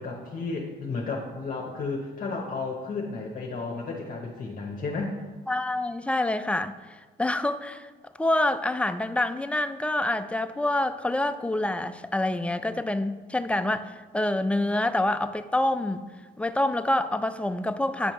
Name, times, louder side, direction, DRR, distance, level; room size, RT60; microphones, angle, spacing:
voice 1, 0.0-5.2, left 3 dB, 45° left, 0.9 m, -33 dB
voice 2, 5.5-6.7 7.2-7.9 8.2-16.0 16.4-18.1, left 1 dB, 5° left, 0.3 m, -26 dB
9.3 x 5.1 x 3.1 m
cardioid pair, 90°, 20 cm